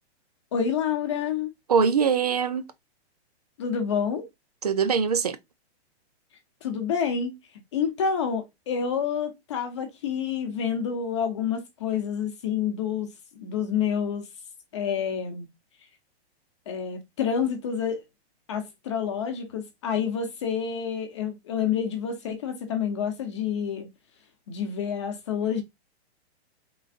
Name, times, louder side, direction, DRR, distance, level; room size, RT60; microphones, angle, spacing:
voice 1, 0.5-1.5 3.6-4.3 6.6-7.3 7.7-13.1 13.4-14.3 14.7-15.5 16.7-18.0 18.5-23.9 24.5-25.6, left 7 dB, 25° left, 0.9 m, -28 dB
voice 2, 1.7-2.7 4.6-5.4, right 6 dB, 35° right, 0.5 m, -22 dB
4.7 x 3.9 x 2.4 m
hypercardioid pair, 180°, 33 cm